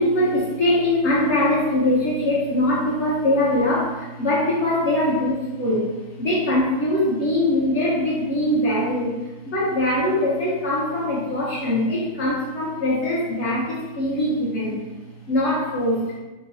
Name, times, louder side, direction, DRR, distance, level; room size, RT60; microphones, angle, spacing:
voice 1, 0.0-5.9 6.2-9.2 9.4-14.8 15.3-16.0, left 1 dB, 55° left, -6 dB, 1.0 m, -22 dB
4.7 x 2.2 x 2.5 m, 1.1 s
omnidirectional pair, 1.7 m